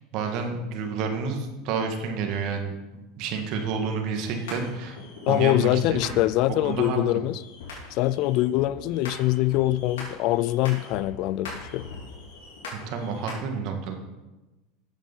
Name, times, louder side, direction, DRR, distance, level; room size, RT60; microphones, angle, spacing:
voice 1, 0.1-2.7 3.2-5.0 5.3-6.2 6.6-7.2 12.7-13.9, right 5 dB, 60° right, 4 dB, 1.9 m, -29 dB
sound 1, 4.2-13.4, left 3 dB, 75° left, 3.9 m, -42 dB
voice 2, 5.3-7.4 7.9-11.9, left 15 dB, 60° left, 18 dB, 0.4 m, -24 dB
8.8 x 7.3 x 5.6 m, 1.1 s
hypercardioid pair, 95°, 0 cm